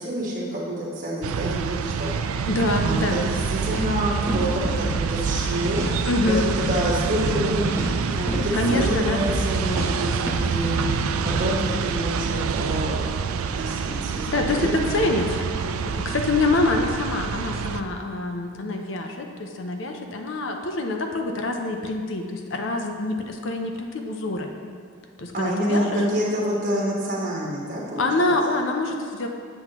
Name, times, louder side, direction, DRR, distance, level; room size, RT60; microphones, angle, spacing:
voice 1, 0.0-2.1 2.8-5.8 6.2-7.8 8.1-10.8 11.2-13.0 13.3-15.1 15.6-16.0 25.3-28.3, equal, 35° right, -5 dB, 1.4 m, -27 dB
sound 1, 1.2-17.8, right 6 dB, 75° right, 0.3 m, -27 dB
sound 2, 2.4-11.4, right 1 dB, 15° right, 0.9 m, -31 dB
voice 2, 2.5-3.2 6.0-6.4 8.5-9.2 14.3-24.5 25.2-25.9 28.0-29.3, left 2 dB, 60° left, 3 dB, 0.6 m, -25 dB
7.8 x 7.1 x 3.0 m, 2.1 s
head